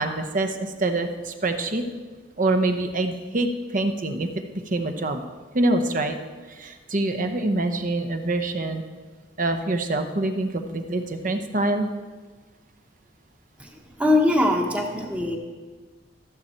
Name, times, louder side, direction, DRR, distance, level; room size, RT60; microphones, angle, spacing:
voice 1, 0.0-1.8 2.4-4.3 4.6-5.2 5.5-6.2 6.5-8.8 9.4-11.9, right 2 dB, 45° right, 7 dB, 0.8 m, -25 dB
voice 2, 14.0-15.4, left 1 dB, 5° right, 2 dB, 1.0 m, -21 dB
13.5 x 7.3 x 4.4 m, 1.4 s
head